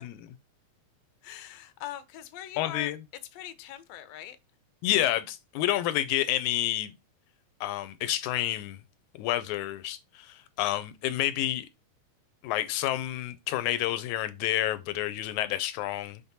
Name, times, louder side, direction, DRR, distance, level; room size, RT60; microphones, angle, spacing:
voice 1, 1.2-2.9 3.3-4.4, left 12 dB, 75° left, 1.7 m, -42 dB
voice 2, 2.6-3.0 4.8-6.9 7.6-8.8 9.2-11.7 12.4-16.2, left 13 dB, 90° left, 2.0 m, -29 dB
6.3 x 3.6 x 4.1 m
omnidirectional pair, 3.4 m